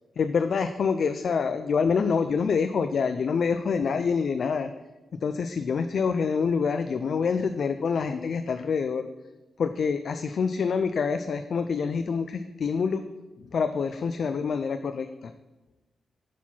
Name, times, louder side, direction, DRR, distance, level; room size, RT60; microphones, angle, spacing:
voice 1, 0.2-4.7 5.2-9.1 9.6-13.0 13.5-15.3, left 5 dB, 45° left, 9 dB, 0.3 m, -26 dB
8.1 x 4.6 x 5.9 m, 1.1 s
wide cardioid pair, 175°, 0 cm